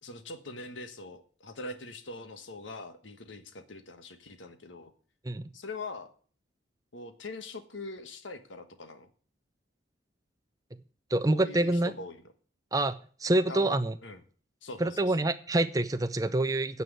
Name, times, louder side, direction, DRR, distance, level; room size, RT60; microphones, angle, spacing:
voice 1, 0.0-4.9 5.5-6.1 6.9-9.1 11.3-12.2 13.5-14.2 14.6-15.3, left 2 dB, 85° left, 1.3 m, -43 dB
voice 2, 11.1-11.9 12.7-12.9 13.2-13.9 14.8-16.8, right 1 dB, 20° right, 0.6 m, -26 dB
9.6 x 6.1 x 8.1 m
head